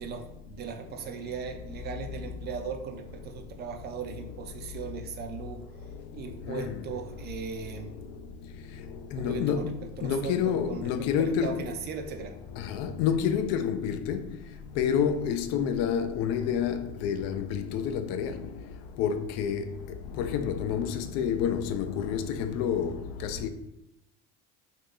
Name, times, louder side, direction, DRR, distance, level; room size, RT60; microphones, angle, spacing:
voice 1, 0.0-5.6 6.1-7.9 9.1-9.7 10.0-12.3, right 6 dB, 35° right, 0.4 m, -38 dB
voice 2, 5.7-6.9 7.5-11.6 12.5-23.5, left 8 dB, 60° left, 0.4 m, -30 dB
2.9 x 2.4 x 3.6 m
supercardioid pair, 125°, 30 cm